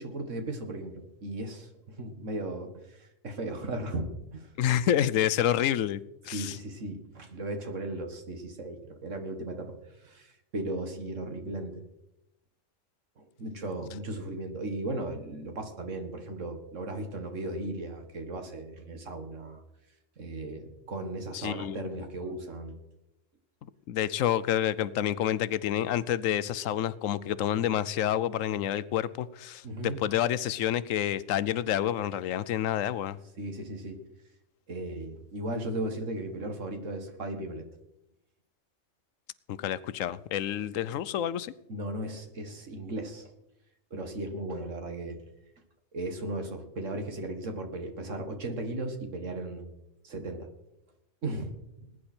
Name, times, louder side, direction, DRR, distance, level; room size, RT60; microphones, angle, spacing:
voice 1, 0.0-4.5 6.3-9.8 10.0-11.8 13.2-19.6 20.2-22.8 29.6-30.0 33.4-34.0 34.7-37.7 41.7-43.3 43.9-45.2 45.9-49.8 50.0-50.5 51.2-51.5, right 1 dB, 75° right, 2.1 m, -36 dB
voice 2, 4.6-6.6 21.3-22.0 23.9-33.2 39.5-41.5, left 11 dB, 85° left, 1.0 m, -28 dB
20.0 x 9.8 x 4.4 m
omnidirectional pair, 1.3 m